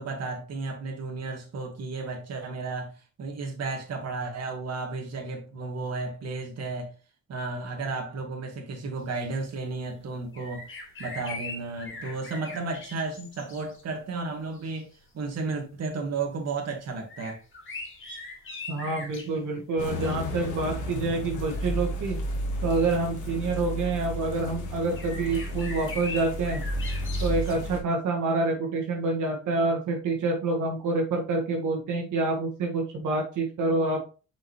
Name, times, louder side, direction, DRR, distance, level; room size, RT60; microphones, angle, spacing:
voice 1, 0.0-2.9 3.2-6.9 7.3-10.6 11.0-14.9 15.1-17.4, right 3 dB, 55° right, 2.0 m, -33 dB
sound 1, 10.3-13.8 14.5-14.7 17.1-19.3 21.3-21.7 22.5-22.6 24.3-24.5 24.9-27.5, left 3 dB, 40° left, 2.4 m, -40 dB
voice 2, 18.7-22.2 22.6-26.6 27.2-34.0, right 3 dB, 75° right, 1.8 m, -27 dB
sound 2, 19.8-27.8, equal, 85° left, 1.6 m, -32 dB
5.6 x 5.1 x 3.2 m
cardioid pair, 90°, 30 cm